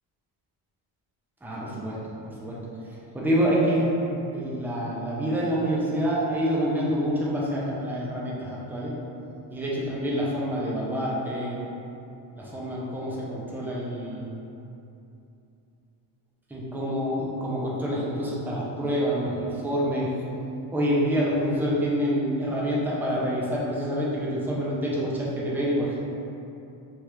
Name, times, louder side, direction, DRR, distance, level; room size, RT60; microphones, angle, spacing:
voice 1, 1.4-2.0 2.2-2.6 3.1-8.9 9.5-11.6 12.4-14.3 16.5-20.1 20.7-26.0, equal, 5° right, -6 dB, 0.4 m, -27 dB
3.3 x 2.4 x 2.9 m, 2.8 s
cardioid pair, 125°, 49 cm